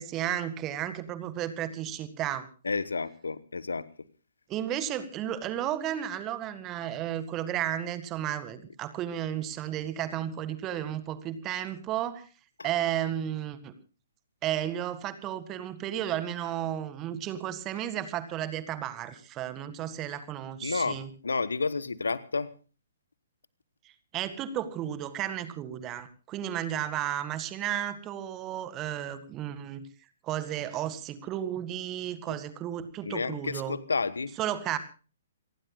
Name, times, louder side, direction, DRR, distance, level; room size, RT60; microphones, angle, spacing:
voice 1, 0.0-2.5 4.5-12.2 12.6-13.7 14.4-21.1 24.1-29.8 30.2-33.8 34.4-34.8, right 11 dB, 25° right, 12 dB, 1.8 m, -33 dB
voice 2, 2.6-3.9 12.6-12.7 20.6-22.5 32.3-32.4 33.0-34.3, left 4 dB, 70° left, 17 dB, 1.2 m, -31 dB
28.5 x 19.0 x 2.3 m, 0.35 s
figure-of-eight pair, 120°, 0 cm